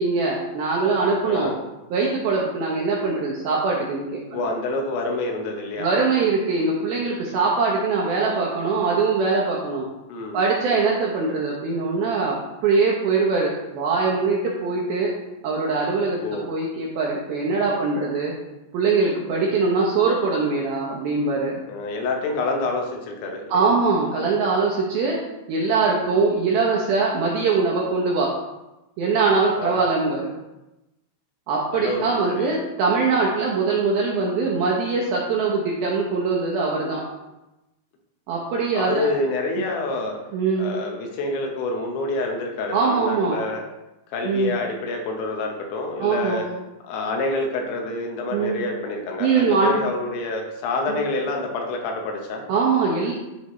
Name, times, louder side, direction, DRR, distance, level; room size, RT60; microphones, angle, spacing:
voice 1, 0.0-1.5 1.9-4.4 5.8-9.9 10.3-15.1 15.4-16.2 16.5-18.3 18.7-21.6 23.5-25.2 25.5-28.3 29.0-30.3 31.5-37.0 38.3-39.1 40.3-40.7 42.7-43.4 44.3-44.5 46.0-46.4 48.3-48.6 49.2-49.8 50.9-51.0 52.5-53.1, right 4 dB, 75° right, -3 dB, 2.3 m, -22 dB
voice 2, 4.3-5.9 10.1-10.4 16.2-16.5 21.7-23.7 29.6-29.8 31.7-32.6 38.7-40.2 40.6-43.6 44.1-46.4 46.8-52.5, left 2 dB, 80° left, 2 dB, 3.2 m, -27 dB
12.5 x 4.2 x 3.1 m, 0.98 s
omnidirectional pair, 5.4 m